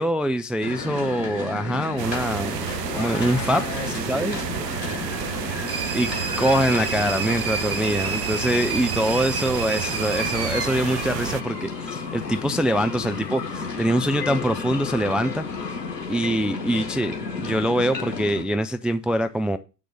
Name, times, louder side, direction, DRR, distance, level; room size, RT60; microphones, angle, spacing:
voice 1, 0.0-2.6 2.9-3.6 4.1-4.4 5.9-6.1 6.4-15.8 16.1-19.6, equal, ahead, 0.4 m, -24 dB
sound 1, 0.6-18.4, left 4 dB, 90° left, 2.2 m, -32 dB
sound 2, 2.0-11.4, right 14 dB, 75° right, 0.7 m, -31 dB
voice 2, 2.9-5.3 12.3-12.5 13.0-13.2, left 6 dB, 60° left, 2.6 m, -37 dB
sound 3, 5.7-12.1, right 5 dB, 30° right, 2.5 m, -32 dB
8.0 x 6.5 x 5.4 m
hypercardioid pair, 75°, 49 cm